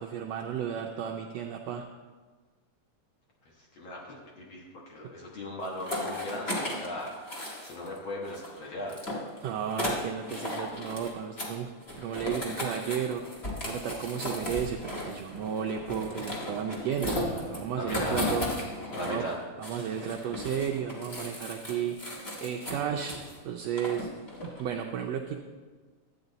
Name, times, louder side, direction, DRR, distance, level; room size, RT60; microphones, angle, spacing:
voice 1, 0.0-1.8 9.4-18.5 19.1-19.2 19.6-22.0 22.4-23.2 23.4-24.1 24.4-25.4, right 8 dB, 80° right, 2 dB, 1.5 m, -33 dB
voice 2, 3.6-7.1 7.6-9.0 17.8-18.2 18.9-19.4, left 1 dB, 55° left, -2 dB, 1.7 m, -38 dB
sound 1, 5.6-8.0 8.2-11.1 11.4-11.5 11.8-19.3 19.6-23.4 23.8-24.7, left 1 dB, 25° left, 1.4 m, -36 dB
12.5 x 8.8 x 4.0 m, 1.4 s
omnidirectional pair, 3.5 m